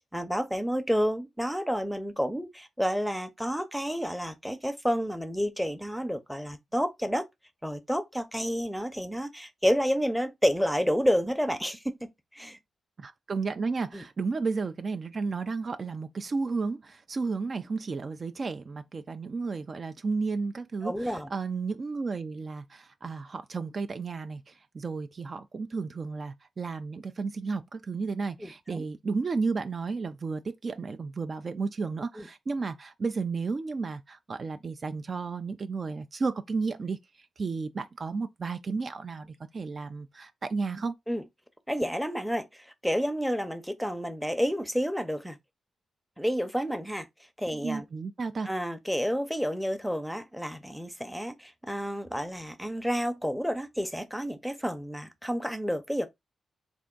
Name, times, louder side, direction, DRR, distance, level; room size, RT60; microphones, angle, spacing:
voice 1, 0.1-7.3 7.6-12.0 12.3-12.6 13.9-14.0 20.8-21.3 28.4-28.8 32.2-32.3 41.1-41.2 41.7-45.4 46.2-47.1 47.4-47.8 48.5-56.1, equal, ahead, 0.7 m, -30 dB
voice 2, 13.0-37.0 37.4-40.9 47.6-48.5, right 4 dB, 45° right, 0.4 m, -33 dB
3.4 x 2.6 x 3.7 m
cardioid pair, 80°, 0 cm